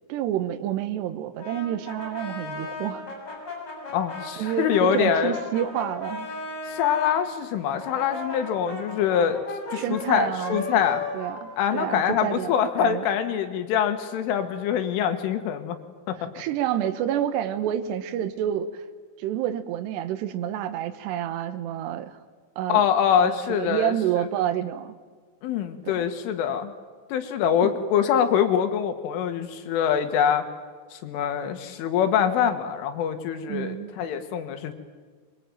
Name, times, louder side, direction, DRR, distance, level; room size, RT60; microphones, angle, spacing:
voice 1, 0.1-3.1 4.4-6.4 9.7-10.8 11.1-13.1 16.3-18.8 19.2-22.2 22.6-22.8 23.2-24.9 25.8-26.1 27.6-27.7 33.5-33.9, right 11 dB, 70° right, 10 dB, 3.1 m, -29 dB
Brass instrument, 1.4-7.1 7.7-12.5, left 3 dB, 20° left, 6.8 m, -36 dB
voice 2, 3.9-5.4 6.7-9.4 9.7-11.0 11.6-15.8 16.1-16.2 22.7-23.9 25.4-26.7 27.1-30.5 30.9-34.7, left 8 dB, 80° left, 8 dB, 4.1 m, -24 dB
24.5 x 22.5 x 9.2 m, 1.5 s
omnidirectional pair, 5.6 m